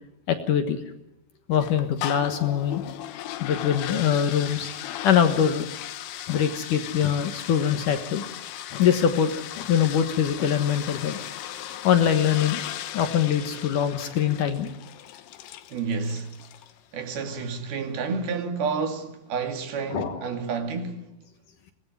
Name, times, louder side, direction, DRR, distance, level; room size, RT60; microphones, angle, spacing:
voice 1, 0.3-0.8 1.5-2.8 3.4-4.7 5.0-5.7 6.3-8.2 8.7-9.3 9.5-11.2 11.8-12.6 12.9-14.7 19.9-20.2, left 8 dB, 65° left, 2.6 m, -23 dB
sound 1, 1.5-16.8, left 12 dB, 80° left, 3.2 m, -37 dB
voice 2, 15.7-16.4 16.9-21.1, right 5 dB, 70° right, 4.2 m, -30 dB
24.0 x 19.0 x 9.4 m
omnidirectional pair, 4.7 m